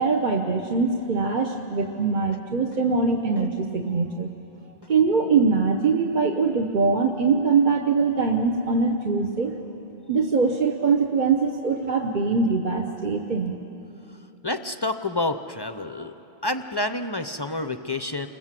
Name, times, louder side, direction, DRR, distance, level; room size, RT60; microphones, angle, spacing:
voice 1, 0.0-4.3 4.9-9.5 10.1-13.6, right 4 dB, 45° right, 4 dB, 1.0 m, -22 dB
voice 2, 14.4-16.1 16.4-18.3, left 2 dB, 30° left, 9 dB, 0.5 m, -28 dB
28.0 x 20.5 x 7.5 m, 3.0 s
omnidirectional pair, 1.2 m